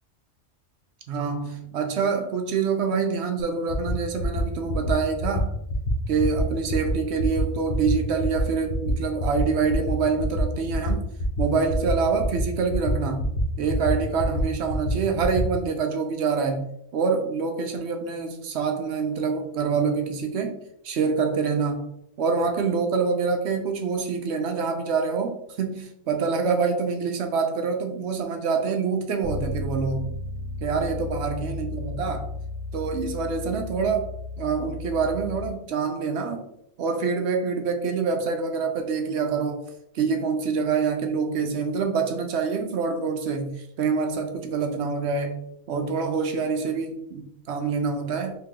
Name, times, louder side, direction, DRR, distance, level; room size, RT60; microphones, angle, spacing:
voice 1, 1.1-5.5 6.1-11.1 11.4-13.2 13.6-16.7 16.9-20.6 20.8-21.9 22.2-30.1 30.6-32.2 32.7-34.1 34.4-36.4 36.8-39.7 39.9-48.4, right 5 dB, 70° right, 4 dB, 0.8 m, -26 dB
sound 1, 3.4-3.5 3.7-3.9 4.2-4.4 4.7-4.9 5.2-5.4 5.7-5.9 6.2-6.4 6.7-6.9 7.2-7.4 7.7-7.9 8.2-8.4 8.7-8.9 9.2-9.4 9.7-9.9 10.2-10.4 10.7-10.9 11.2-11.4 11.7-11.9 12.2-12.4 12.7-12.9 13.2-13.4 13.7-13.9 14.2-14.4 14.7-14.9 15.2-15.4, left 2 dB, 55° left, 0.8 m, -28 dB
Bass guitar, 29.2-35.5, left 2 dB, 90° right, 1.0 m, -34 dB
2.9 x 2.8 x 3.6 m, 0.75 s
omnidirectional pair, 1.3 m